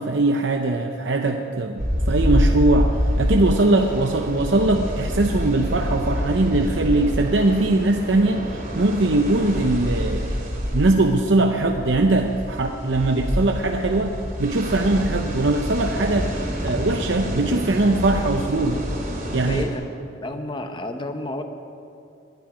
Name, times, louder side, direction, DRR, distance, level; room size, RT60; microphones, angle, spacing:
voice 1, 0.0-10.4 10.7-16.3 16.6-18.8 19.3-19.7, right 2 dB, 65° right, 4 dB, 0.7 m, -21 dB
sound 1, 1.8-19.6, equal, 45° right, 2.9 m, -27 dB
voice 2, 19.5-19.8 20.2-21.4, left 1 dB, 25° left, 7 dB, 0.9 m, -30 dB
19.5 x 11.5 x 5.0 m, 2.6 s
head